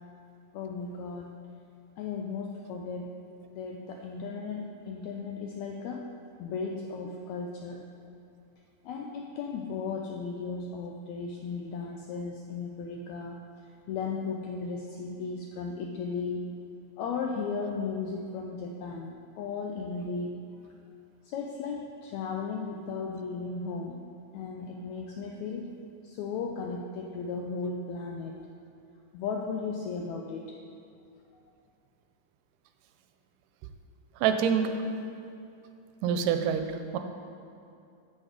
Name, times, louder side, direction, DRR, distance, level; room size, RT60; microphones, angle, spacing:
voice 1, 0.5-1.3 2.0-3.1 3.5-6.0 6.4-7.8 8.8-13.4 13.9-16.5 17.0-20.3 21.2-24.0 24.3-25.7 26.0-28.4 29.1-30.5, left 4 dB, 85° left, 1 dB, 1.6 m, -35 dB
voice 2, 34.2-34.7 36.0-37.0, right 7 dB, 85° right, 7 dB, 2.2 m, -26 dB
7.7 x 6.3 x 4.9 m, 2.7 s
omnidirectional pair, 3.7 m